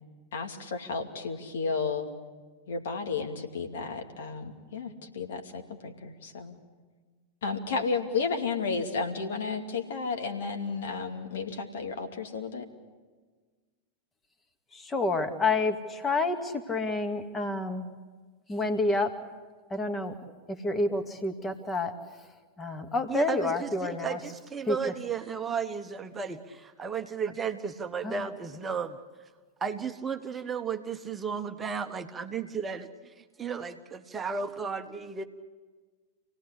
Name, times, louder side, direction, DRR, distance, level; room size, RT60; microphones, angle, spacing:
voice 1, 0.3-2.1 2.7-6.6 7.4-12.6, left 4 dB, 60° left, 4 dB, 2.5 m, -32 dB
voice 2, 14.7-17.9 18.5-19.2 19.7-20.2 20.5-22.3 22.6-24.2 24.6-24.8 28.0-28.3, left 2 dB, 15° left, 7 dB, 2.1 m, -29 dB
voice 3, 23.1-23.7 24.0-29.0 29.6-32.9 33.4-35.2, right 6 dB, 20° right, 6 dB, 1.2 m, -34 dB
28.0 x 18.0 x 8.5 m, 1.4 s
figure-of-eight pair, 90°, 0 cm